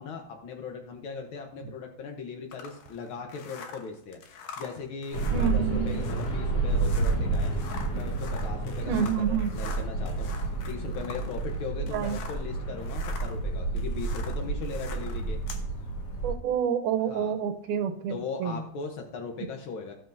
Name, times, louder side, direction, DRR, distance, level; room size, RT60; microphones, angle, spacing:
voice 1, 0.0-7.6 7.9-10.3 10.7-15.4 17.1-17.3 18.1-19.9, left 5 dB, 65° left, 2 dB, 1.3 m, -39 dB
sound 1, 2.5-12.5 12.8-15.7, left 6 dB, 85° left, 2.7 m, -45 dB
sound 2, 5.1-16.3, right 3 dB, 40° left, 1.8 m, -30 dB
voice 2, 5.3-6.0 8.9-9.5 11.9-12.2 16.2-18.2 18.4-18.6, right 8 dB, 85° right, 7 dB, 2.3 m, -28 dB
15.5 x 7.8 x 2.6 m, 0.67 s
omnidirectional pair, 3.5 m